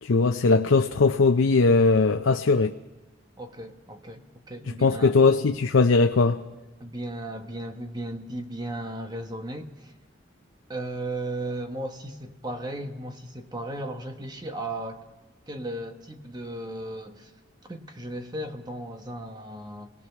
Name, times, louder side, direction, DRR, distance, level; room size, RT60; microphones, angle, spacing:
voice 1, 0.0-2.7 4.8-6.4, left 4 dB, 90° left, 0.6 m, -20 dB
voice 2, 3.4-5.2 6.8-9.9 10.7-15.0 15.5-17.3 17.7-19.9, right 1 dB, 20° right, 1.2 m, -36 dB
27.0 x 19.0 x 5.9 m
head